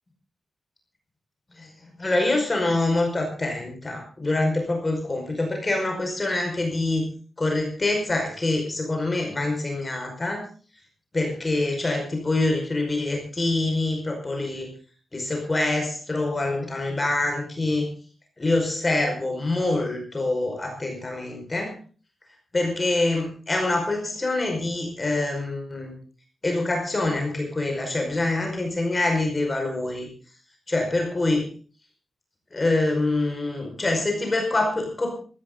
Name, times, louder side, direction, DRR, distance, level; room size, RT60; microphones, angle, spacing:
voice 1, 2.0-7.1 7.4-10.4 11.1-14.7 15.1-17.9 18.4-21.7 22.5-25.9 26.4-30.1 30.7-31.5 32.5-35.1, left 2 dB, 25° left, 2 dB, 5.3 m, -25 dB
18.5 x 15.5 x 3.9 m, 0.39 s
wide cardioid pair, 125°, 0 cm